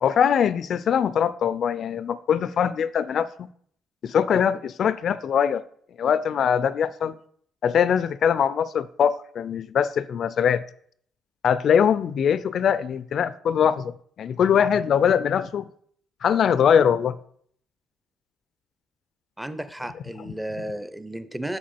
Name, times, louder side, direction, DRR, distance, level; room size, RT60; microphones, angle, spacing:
voice 1, 0.0-3.5 4.0-5.6 6.0-7.2 7.6-10.6 11.4-15.7 16.2-17.2, left 8 dB, 60° left, 0.4 m, -22 dB
voice 2, 19.4-21.6, right 1 dB, 5° right, 0.6 m, -33 dB
7.4 x 5.4 x 4.4 m
cardioid pair, 90°, 0 cm